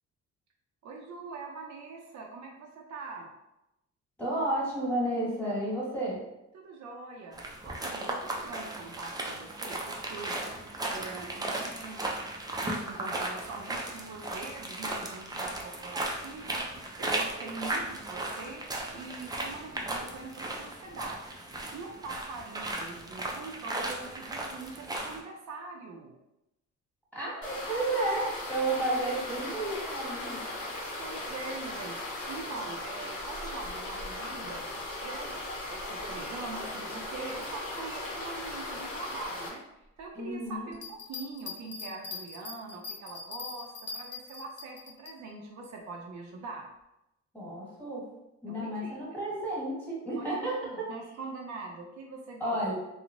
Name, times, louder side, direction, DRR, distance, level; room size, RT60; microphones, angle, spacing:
voice 1, 0.8-3.3 6.5-7.4 7.6-10.4 10.6-18.6 18.9-21.4 21.7-26.2 31.0-32.0 32.3-34.7 35.0-39.6 40.0-46.7 48.5-49.2 50.2-52.6, right 3 dB, 70° right, 1 dB, 0.5 m, -43 dB
voice 2, 4.2-6.2 27.1-30.4 40.1-40.7 47.3-48.1 48.4-50.9 52.4-52.7, right 1 dB, 5° left, -7 dB, 1.4 m, -32 dB
sound 1, 7.3-25.2, right 2 dB, 15° right, 0.4 m, -36 dB
sound 2, 27.4-39.5, left 2 dB, 75° left, 0.8 m, -38 dB
sound 3, 40.7-45.1, left 4 dB, 35° left, 0.6 m, -41 dB
2.9 x 2.0 x 2.5 m, 0.88 s
cardioid pair, 90°, 30 cm